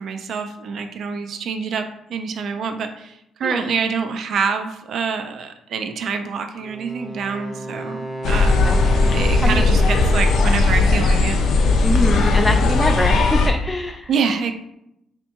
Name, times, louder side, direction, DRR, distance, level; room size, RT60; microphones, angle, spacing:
voice 1, 0.0-8.7 9.1-11.4 14.1-14.5, right 5 dB, 65° right, 7 dB, 0.5 m, -26 dB
Wind instrument woodwind instrument, 6.6-10.4, right 1 dB, 20° right, 0.6 m, -32 dB
sound 1, 8.2-13.5, left 3 dB, 80° left, 0.6 m, -17 dB
voice 2, 11.8-14.1, left 1 dB, 15° left, 4 dB, 0.3 m, -24 dB
3.4 x 2.8 x 4.3 m, 0.81 s
cardioid pair, 90°, 0 cm